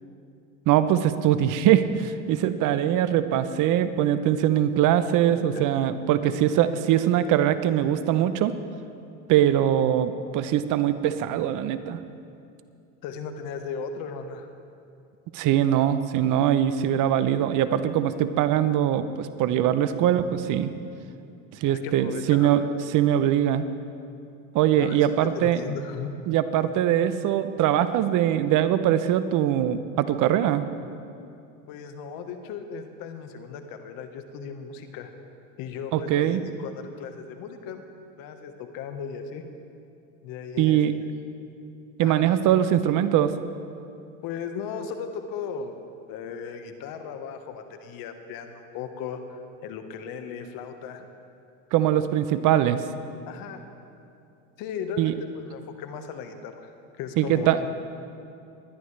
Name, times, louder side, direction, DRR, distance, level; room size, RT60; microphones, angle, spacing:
voice 1, 0.7-8.5 9.3-12.0 15.3-20.7 21.6-22.6 22.9-23.7 24.5-25.6 26.3-30.6 35.9-36.4 40.6-40.9 42.0-43.3 51.7-52.8 55.0-55.1 57.2-57.6, right 11 dB, 50° right, 12 dB, 0.8 m, -22 dB
voice 2, 5.3-5.6 6.2-6.3 13.0-14.5 21.6-22.7 24.8-26.1 31.7-35.1 35.6-37.8 38.2-39.4 40.2-40.8 42.0-42.3 44.2-45.7 46.1-51.1 52.3-52.4 53.3-53.6 54.6-56.7 57.0-57.5, left 6 dB, 55° left, 7 dB, 1.4 m, -36 dB
20.0 x 12.0 x 3.3 m, 2.6 s
supercardioid pair, 100°, 41 cm